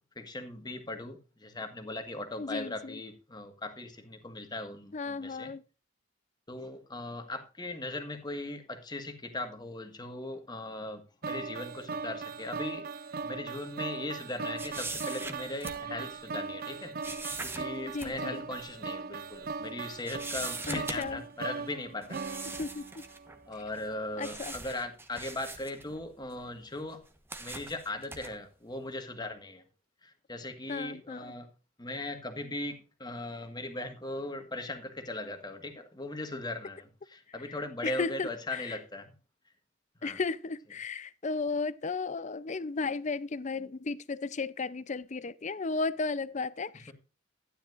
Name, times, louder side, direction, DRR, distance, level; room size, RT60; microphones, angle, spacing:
voice 1, 0.1-5.5 6.5-16.9 17.4-22.2 23.5-27.0 27.4-29.6 30.0-31.5 31.8-39.1 40.0-40.2 46.9-47.0, left 2 dB, 20° left, 1.6 m, -39 dB
voice 2, 2.4-3.0 4.9-5.6 17.9-18.4 20.7-21.2 22.6-23.0 24.2-24.5 30.7-31.3 37.8-38.7 40.0-46.9, left 4 dB, 40° left, 0.5 m, -34 dB
sound 1, 11.2-23.4, right 4 dB, 50° right, 0.6 m, -39 dB
sound 2, 14.6-16.2 17.0-18.1 18.5-18.7 19.3-19.7 20.1-21.3 22.0-23.4 23.7-23.9 24.2-26.4 26.9-28.4, right 3 dB, 10° right, 1.1 m, -41 dB
12.5 x 10.0 x 2.5 m
head